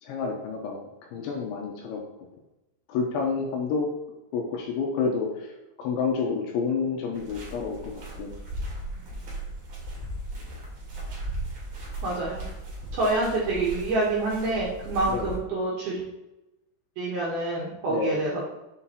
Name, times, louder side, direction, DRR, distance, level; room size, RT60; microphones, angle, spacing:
voice 1, 0.0-2.0 2.9-3.9 4.3-8.3 10.4-10.5 15.1-15.3 17.9-18.2, left 5 dB, 80° left, 0 dB, 2.9 m, -29 dB
sound 1, 7.1-15.4, right 1 dB, 45° right, 2.4 m, -37 dB
voice 2, 12.0-12.4 12.9-16.1 17.0-18.5, right 2 dB, 70° right, -5 dB, 2.4 m, -27 dB
7.1 x 5.7 x 2.9 m, 0.94 s
omnidirectional pair, 5.9 m